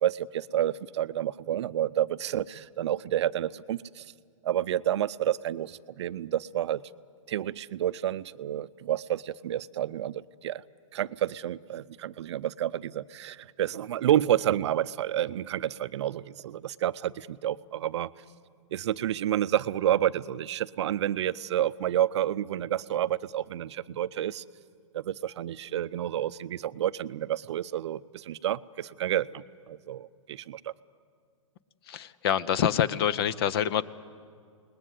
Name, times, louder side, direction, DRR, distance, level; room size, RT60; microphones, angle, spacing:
voice 1, 0.0-4.0 4.4-6.8 7.3-10.6 10.9-18.1 18.7-24.4 24.9-30.7, right 11 dB, 55° right, 16 dB, 0.6 m, -29 dB
voice 2, 31.9-33.8, left 9 dB, 45° left, 18 dB, 0.8 m, -26 dB
28.0 x 20.5 x 8.2 m, 2.2 s
hypercardioid pair, 135°, 18 cm